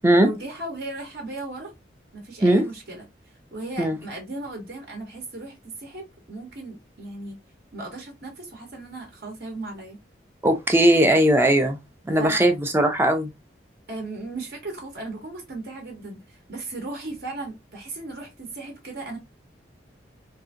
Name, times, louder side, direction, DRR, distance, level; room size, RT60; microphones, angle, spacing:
voice 1, 0.1-1.7 2.1-3.1 3.5-7.4 7.7-10.0 12.2-12.5 13.9-19.2, right 2 dB, 60° right, 0.8 m, -36 dB
voice 2, 10.4-11.8 12.1-13.3, right 1 dB, 15° right, 0.4 m, -18 dB
2.7 x 2.5 x 2.5 m
head